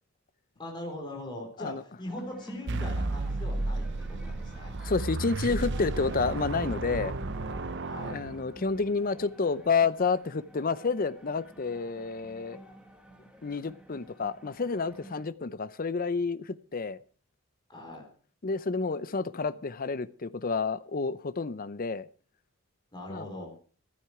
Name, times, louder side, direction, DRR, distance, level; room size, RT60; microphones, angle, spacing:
voice 1, 0.6-4.8 7.8-8.1 17.7-18.1 19.3-19.6 22.9-23.5, left 1 dB, 20° left, 1 dB, 4.0 m, -41 dB
sound 1, 2.1-15.3, right 1 dB, 5° right, 2.0 m, -50 dB
sound 2, 2.7-8.8, right 2 dB, 55° right, 0.8 m, -33 dB
voice 2, 4.8-7.1 8.0-12.6 13.4-17.0 18.4-22.1 23.1-23.3, left 4 dB, 40° left, 16 dB, 0.6 m, -30 dB
14.0 x 12.5 x 4.8 m, 0.41 s
head